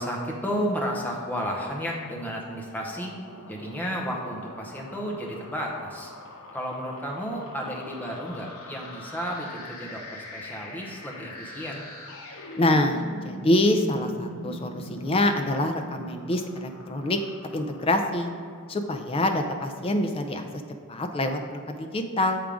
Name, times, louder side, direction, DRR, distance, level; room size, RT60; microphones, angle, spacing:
voice 1, 0.0-3.1 3.5-6.1 6.5-11.9, equal, 10° left, -1 dB, 0.8 m, -32 dB
sound 1, 2.5-18.9, left 1 dB, 85° left, 0.9 m, -43 dB
voice 2, 12.6-17.2 17.5-18.3 18.7-20.4 20.9-22.4, left 1 dB, 25° left, 5 dB, 0.4 m, -25 dB
7.3 x 3.5 x 5.0 m, 2.2 s
head